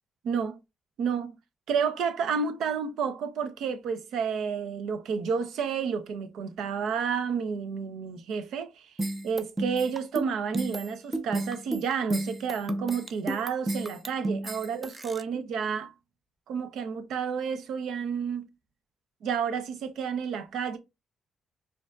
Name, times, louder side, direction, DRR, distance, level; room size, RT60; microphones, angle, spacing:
voice 1, 0.2-0.6 1.0-1.4 1.7-8.9 9.2-15.9 16.5-18.5 19.2-20.8, right 6 dB, 75° right, 0.7 m, -30 dB
sound 1, 9.0-15.2, right 1 dB, 20° right, 0.4 m, -32 dB
4.9 x 2.6 x 2.2 m
cardioid pair, 90°, 0 cm